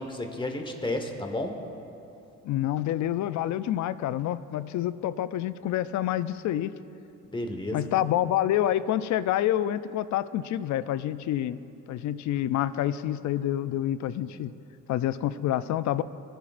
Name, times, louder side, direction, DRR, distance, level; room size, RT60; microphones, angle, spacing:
voice 1, 0.0-1.5 7.3-7.9, left 1 dB, 15° left, 4 dB, 1.3 m, -32 dB
voice 2, 2.4-6.7 7.7-11.6 11.9-14.5 14.9-16.0, left 12 dB, 70° left, 15 dB, 0.5 m, -27 dB
19.0 x 10.5 x 2.5 m, 2.7 s
cardioid pair, 90°, 30 cm